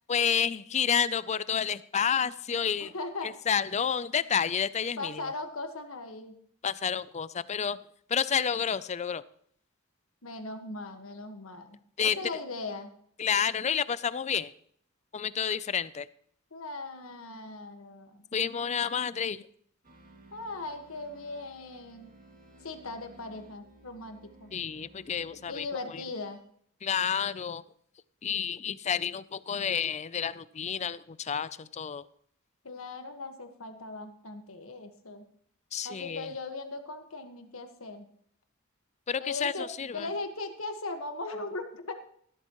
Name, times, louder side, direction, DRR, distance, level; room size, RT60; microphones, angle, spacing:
voice 1, 0.1-2.9 3.2-5.3 6.6-7.8 8.1-9.2 12.0-12.2 13.2-14.5 15.1-16.1 18.3-19.4 24.5-25.6 25.9-26.0 26.8-27.6 28.2-32.0 35.7-36.3 39.1-40.1, left 7 dB, 35° left, 17 dB, 0.4 m, -30 dB
voice 2, 2.8-3.3 5.0-6.4 10.2-12.9 16.5-18.5 20.3-22.1 22.6-24.5 25.5-26.4 32.6-35.2 35.8-38.1 39.2-41.9, left 3 dB, 80° left, 6 dB, 1.6 m, -39 dB
sound 1, 19.8-26.4, right 2 dB, 40° right, 2.2 m, -57 dB
14.5 x 13.0 x 3.1 m, 0.64 s
head